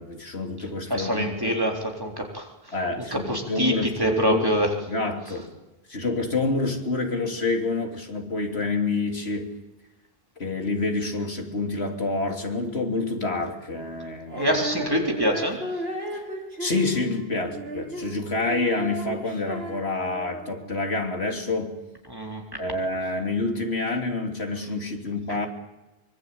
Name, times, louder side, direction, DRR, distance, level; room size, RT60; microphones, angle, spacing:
voice 1, 0.0-1.5 2.7-4.5 4.9-5.5 5.9-9.5 10.4-14.4 16.1-16.2 16.6-21.7 22.6-25.5, left 3 dB, 85° left, 3 dB, 3.4 m, -28 dB
voice 2, 0.9-2.5 3.1-4.7 14.4-15.6 22.1-22.4, equal, 20° right, 1 dB, 3.9 m, -25 dB
Female singing, 14.3-20.7, right 1 dB, 75° right, 4.0 m, -35 dB
24.5 x 24.0 x 8.7 m, 1.0 s
omnidirectional pair, 1.0 m